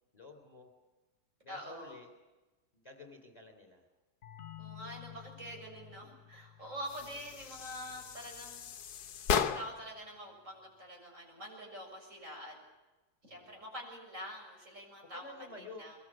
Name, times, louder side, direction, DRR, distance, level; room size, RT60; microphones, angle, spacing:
voice 1, 0.1-0.7 1.4-2.1 2.7-3.8 5.8-5.9 13.3-13.6 15.0-15.9, left 3 dB, 25° left, 4 dB, 3.6 m, -51 dB
voice 2, 1.5-2.0 4.6-8.6 9.3-12.6 13.3-16.0, equal, 50° right, 0 dB, 7.5 m, -46 dB
sound 1, 4.2-9.7, left 12 dB, 60° left, 1.4 m, -54 dB
sound 2, 6.8-10.0, left 7 dB, 75° left, 1.6 m, -36 dB
23.0 x 22.0 x 9.0 m, 1.2 s
omnidirectional pair, 1.7 m